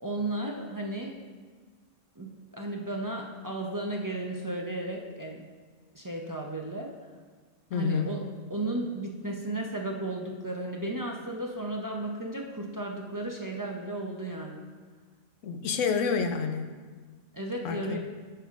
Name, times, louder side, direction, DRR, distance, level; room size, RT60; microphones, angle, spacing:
voice 1, 0.0-1.2 2.2-5.5 5.9-7.1 7.7-8.2 8.5-14.7 17.3-18.0, right 2 dB, 30° right, 0 dB, 0.4 m, -34 dB
voice 2, 7.7-8.1 15.4-16.7 17.6-18.0, left 6 dB, 80° left, 6 dB, 1.0 m, -28 dB
14.5 x 5.6 x 2.5 m, 1.5 s
omnidirectional pair, 1.3 m